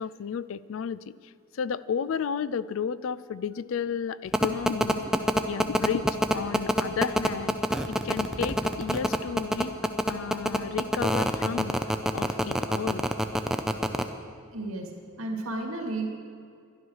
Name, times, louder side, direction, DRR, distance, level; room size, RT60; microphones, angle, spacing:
voice 1, 0.0-5.0 5.5-6.1 6.3-7.6 7.9-11.8 12.1-13.1, left 7 dB, 70° left, 18 dB, 0.3 m, -32 dB
sound 1, 4.3-14.0, equal, ahead, 0.4 m, -24 dB
voice 2, 14.5-16.2, right 2 dB, 85° right, 2 dB, 2.1 m, -33 dB
12.0 x 11.0 x 6.4 m, 2.3 s
head